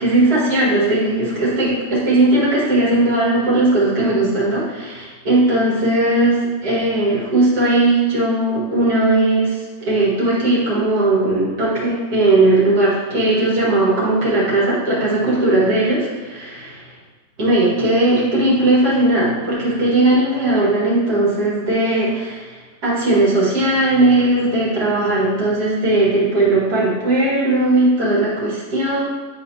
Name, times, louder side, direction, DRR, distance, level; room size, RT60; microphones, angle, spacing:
voice 1, 0.0-16.9 17.4-29.0, right 2 dB, 80° right, -6 dB, 2.3 m, -18 dB
9.5 x 4.3 x 2.7 m, 1.4 s
omnidirectional pair, 1.6 m